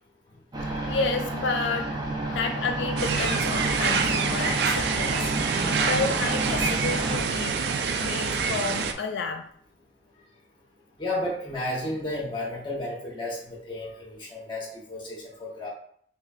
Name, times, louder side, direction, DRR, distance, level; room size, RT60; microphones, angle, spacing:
sound 1, 0.5-7.2, right 2 dB, 25° right, 0.7 m, -31 dB
voice 1, 0.9-1.9 2.3-5.3 5.7-7.5 8.0-9.4, left 4 dB, 75° left, 5 dB, 0.3 m, -30 dB
sound 2, 3.0-8.9, right 5 dB, 60° right, 0.4 m, -26 dB
voice 2, 11.0-15.7, left 1 dB, 25° left, -3 dB, 1.1 m, -33 dB
6.0 x 2.5 x 2.4 m, 0.63 s
head